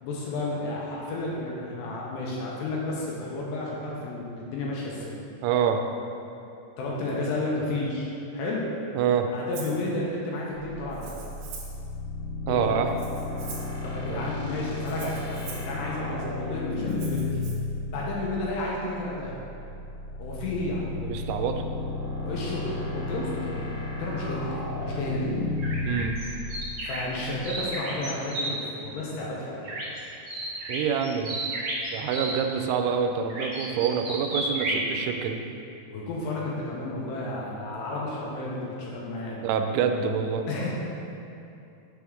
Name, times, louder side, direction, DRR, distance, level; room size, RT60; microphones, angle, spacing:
voice 1, 0.0-5.2 6.8-8.6 9.3-11.2 12.5-12.7 13.8-15.2 15.4-17.3 17.9-19.4 20.2-20.9 22.2-23.7 24.0-25.4 26.8-29.7 33.7-33.8 34.6-34.8 35.9-39.4 40.5-40.7, left 2 dB, 80° left, -4 dB, 2.7 m, -32 dB
voice 2, 5.4-5.8 8.9-9.3 12.5-12.9 14.0-14.2 21.0-21.6 25.8-26.2 30.7-31.4 31.9-35.4 39.4-40.4, right 7 dB, 90° right, 5 dB, 3.0 m, -26 dB
Rattle (instrument), 9.5-9.8 10.9-11.8 12.9-13.8 14.9-15.7 16.9-17.5, right 5 dB, 75° right, 2.6 m, -43 dB
sound 1, 10.6-27.7, left 3 dB, 60° left, 2.6 m, -34 dB
sound 2, 25.6-28.5 29.6-30.0 30.3-32.3 33.3-34.8, right 2 dB, 55° right, 1.5 m, -32 dB
7.1 x 3.5 x 6.2 m, 2.7 s
omnidirectional pair, 5.4 m